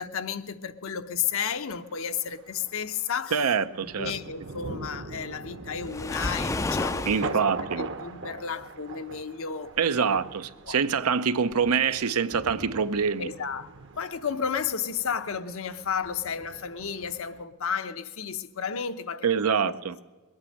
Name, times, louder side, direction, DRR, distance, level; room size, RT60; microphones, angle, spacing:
voice 1, 0.0-3.4 4.0-10.2 10.6-10.8 13.2-13.7 13.9-19.7, left 7 dB, 65° left, 0.8 m, -33 dB
Thunder, 1.2-17.4, right 3 dB, 55° right, 0.9 m, -42 dB
voice 2, 3.3-4.1 7.0-7.8 9.8-13.3 19.2-19.9, right 6 dB, 90° right, 0.7 m, -25 dB
Waves surf, 5.8-7.3, left 2 dB, 15° left, 0.4 m, -30 dB
21.5 x 8.9 x 6.4 m
head